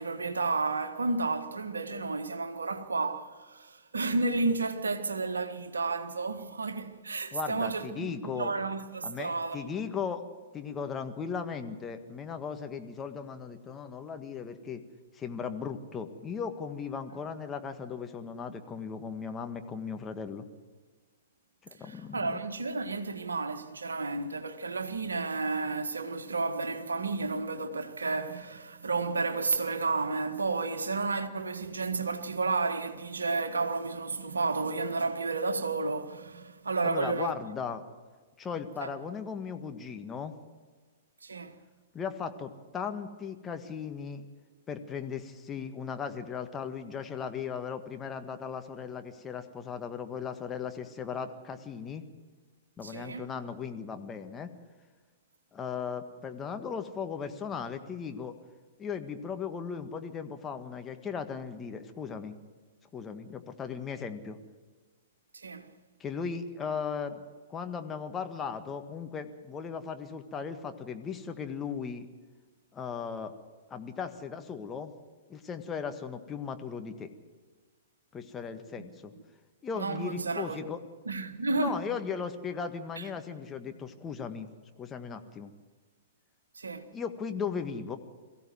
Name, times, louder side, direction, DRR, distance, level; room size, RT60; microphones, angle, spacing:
voice 1, 0.0-9.6 21.8-37.3 38.8-38.9 41.2-41.6 52.8-53.3 65.3-65.7 79.1-79.2 79.7-80.6 81.0-82.0 83.0-83.1 86.5-86.9, right 3 dB, 75° right, 1.6 m, -32 dB
voice 2, 7.3-8.5 9.0-10.2 10.5-14.8 15.1-20.4 21.6-22.4 36.8-37.8 38.4-40.3 41.9-44.2 44.7-52.0 52.8-54.5 55.5-58.3 58.8-62.3 62.9-64.4 66.0-72.1 72.7-73.3 73.7-74.9 75.3-77.1 78.1-79.1 79.6-80.8 81.5-84.5 84.8-85.5 86.9-88.0, left 6 dB, 20° left, 1.7 m, -37 dB
22.5 x 15.5 x 7.8 m
figure-of-eight pair, 105°, 0 cm